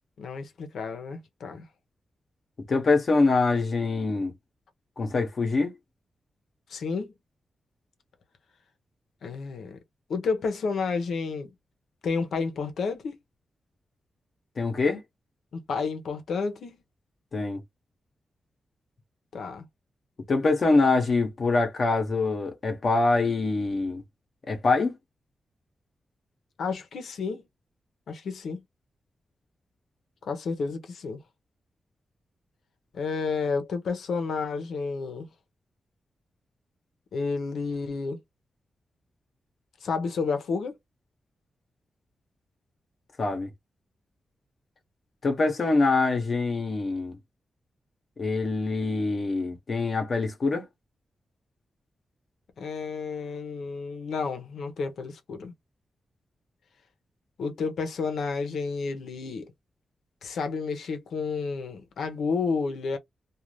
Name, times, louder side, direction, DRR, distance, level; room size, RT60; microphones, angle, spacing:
voice 1, 0.2-1.7 6.7-7.1 9.2-9.8 10.1-11.5 12.0-13.1 15.5-16.8 19.3-19.7 26.6-27.4 28.1-28.6 30.2-31.2 32.9-35.3 37.1-38.2 39.8-40.8 52.6-55.5 57.4-59.5 60.2-63.0, left 4 dB, 85° left, 0.8 m, -31 dB
voice 2, 2.7-4.3 5.0-5.7 14.6-15.0 17.3-17.6 20.3-24.0 24.5-25.0 43.2-43.5 45.2-47.2 48.2-50.7, left 3 dB, 45° left, 0.8 m, -24 dB
2.5 x 2.4 x 3.2 m
wide cardioid pair, 150°, 0 cm